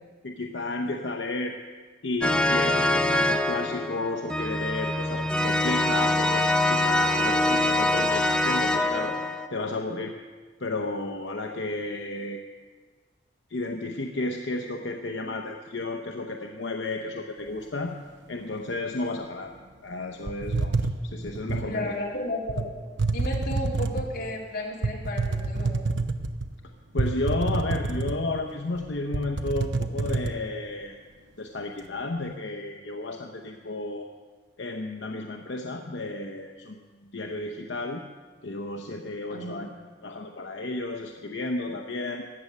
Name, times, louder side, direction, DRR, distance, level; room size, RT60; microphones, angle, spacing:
voice 1, 0.2-1.6 2.0-9.2 9.5-10.1 10.6-12.4 13.5-18.0 18.3-19.5 19.8-20.8 21.0-21.9 26.9-31.0 31.4-34.1 34.6-36.8 37.1-38.0 38.4-39.7 40.0-42.2, left 2 dB, 80° left, 3 dB, 0.8 m, -32 dB
sound 1, 2.2-9.5, left 1 dB, 5° left, 0.5 m, -24 dB
sound 2, 20.3-21.7 22.5-22.6 23.0-24.2 24.8-26.5 27.0-28.4 28.8-28.9 29.1-30.3, right 3 dB, 80° right, 0.8 m, -27 dB
voice 2, 21.6-22.7 23.1-25.8 39.3-39.7, left 1 dB, 60° left, -3 dB, 2.9 m, -33 dB
15.5 x 9.4 x 6.6 m, 1.4 s
head